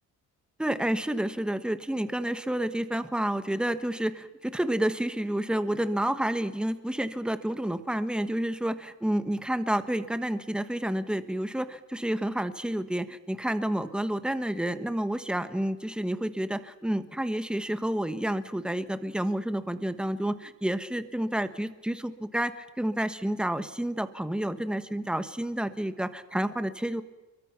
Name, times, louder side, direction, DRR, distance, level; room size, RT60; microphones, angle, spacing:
voice 1, 0.6-27.0, right 1 dB, 5° right, 11 dB, 1.2 m, -29 dB
30.0 x 23.0 x 5.9 m, 1.1 s
cardioid pair, 150°, 31 cm